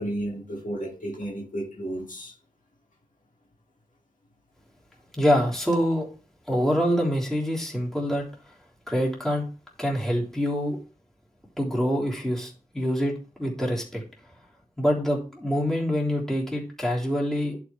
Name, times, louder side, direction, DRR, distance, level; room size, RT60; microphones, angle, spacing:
voice 1, 0.0-2.3, right 1 dB, 65° left, -2 dB, 2.1 m, -32 dB
voice 2, 5.1-6.1 6.5-8.5 8.9-9.4 9.8-10.8 11.6-14.0 14.8-17.6, equal, 5° left, -4 dB, 3.5 m, -25 dB
11.0 x 4.8 x 3.4 m, 0.37 s
wide cardioid pair, 65°, 14 cm